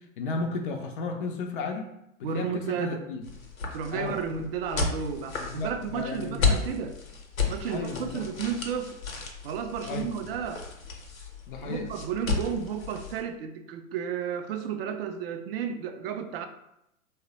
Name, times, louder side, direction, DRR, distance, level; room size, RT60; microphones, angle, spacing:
voice 1, 0.0-1.9 2.2-3.3 3.9-4.2 5.4-6.5 7.7-8.2 9.8-10.1 11.5-11.9, left 3 dB, 40° left, 0.4 m, -34 dB
voice 2, 2.2-3.1 3.7-7.0 7.5-9.0 9.4-10.7 11.6-16.5, right 7 dB, 45° right, 0.4 m, -32 dB
sound 1, 3.2-13.2, left 4 dB, 80° left, 0.8 m, -33 dB
3.2 x 2.1 x 3.9 m
figure-of-eight pair, 100°, 41 cm